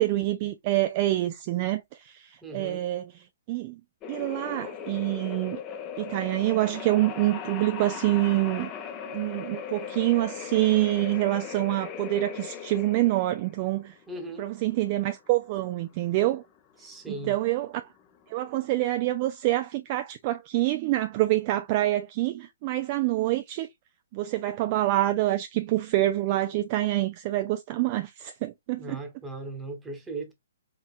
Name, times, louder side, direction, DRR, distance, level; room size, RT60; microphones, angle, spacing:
voice 1, 0.0-3.1 3.5-3.8 4.1-5.6 6.0-8.7 9.1-13.9 14.4-16.4 17.1-17.9 18.3-23.7 24.1-29.0, right 16 dB, 35° right, 0.3 m, -26 dB
voice 2, 2.4-2.9 14.1-14.5 16.8-17.4 28.8-30.3, right 2 dB, 10° right, 1.1 m, -38 dB
sound 1, 4.0-18.6, left 8 dB, 25° left, 0.7 m, -39 dB
4.0 x 3.7 x 2.4 m
figure-of-eight pair, 125°, 0 cm